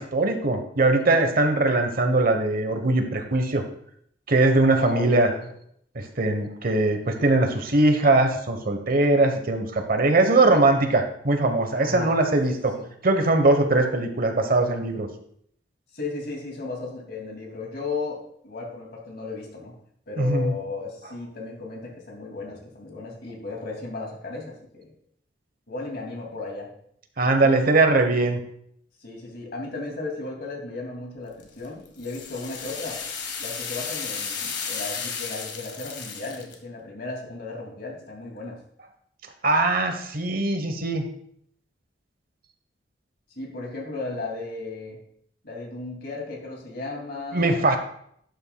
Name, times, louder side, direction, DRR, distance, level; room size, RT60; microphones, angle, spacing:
voice 1, 0.0-3.6 4.3-5.3 5.9-12.7 13.0-15.1 20.2-20.5 27.2-28.4 39.4-41.1 47.3-47.8, right 2 dB, 55° right, 6 dB, 1.1 m, -21 dB
voice 2, 4.7-5.5 11.8-12.1 12.5-12.9 15.9-19.8 20.1-24.9 25.7-26.7 27.4-27.6 29.0-33.0 33.4-38.6 43.4-45.0 45.4-47.6, left 3 dB, 60° left, -1 dB, 2.6 m, -35 dB
sound 1, 31.4-36.5, left 6 dB, 80° left, 1.5 m, -33 dB
11.5 x 8.8 x 2.3 m, 0.68 s
head